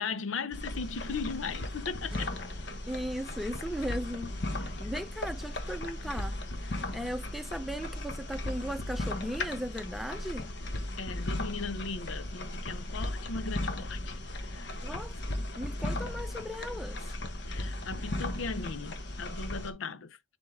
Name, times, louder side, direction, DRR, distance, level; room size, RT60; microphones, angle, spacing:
voice 1, 0.0-2.3 11.0-14.2 14.5-15.0 17.5-20.2, left 4 dB, 90° left, 0.6 m, -38 dB
sound 1, 0.5-19.7, left 1 dB, 60° left, 1.1 m, -36 dB
sound 2, 2.1-5.2, equal, 25° right, 1.1 m, -57 dB
voice 2, 2.9-6.4 6.9-10.5 14.8-17.1, equal, ahead, 0.6 m, -37 dB
10.0 x 3.6 x 3.6 m
head